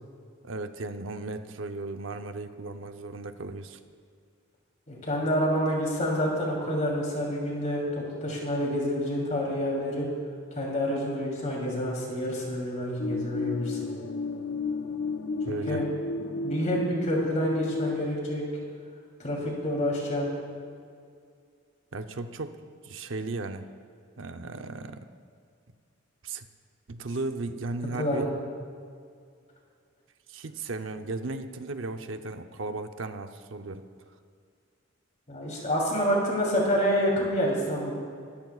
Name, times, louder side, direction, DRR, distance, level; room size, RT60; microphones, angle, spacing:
voice 1, 0.4-3.8 15.4-15.8 21.9-22.6 22.8-23.7 24.2-25.1 26.2-26.5 26.9-28.3 30.3-33.8, right 3 dB, 75° right, 7 dB, 0.7 m, -36 dB
voice 2, 4.9-10.1 10.5-14.0 15.5-15.9 16.4-18.4 19.2-20.3 28.0-28.3 35.3-38.0, equal, 35° left, -3 dB, 3.2 m, -28 dB
sound 1, 13.0-18.1, left 3 dB, 65° left, 0.6 m, -32 dB
25.0 x 14.0 x 2.4 m, 2.2 s
head